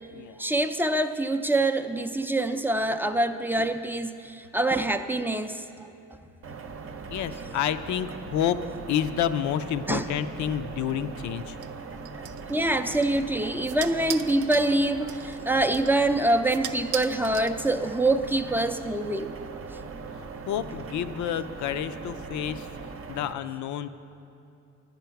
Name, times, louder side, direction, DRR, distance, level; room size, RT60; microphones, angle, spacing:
voice 1, 0.4-5.9 9.9-10.0 12.1-12.2 12.5-19.3, right 2 dB, 5° right, 7 dB, 0.4 m, -25 dB
sound 1, 6.4-23.3, right 4 dB, 45° right, 0.7 m, -40 dB
voice 2, 7.1-8.6 8.9-11.6 20.1-22.7 23.1-23.9, left 10 dB, 70° left, 12 dB, 0.5 m, -29 dB
sound 2, 11.6-18.1, right 11 dB, 85° right, 0.5 m, -41 dB
9.6 x 9.1 x 5.8 m, 2.7 s
cardioid pair, 90°, 30 cm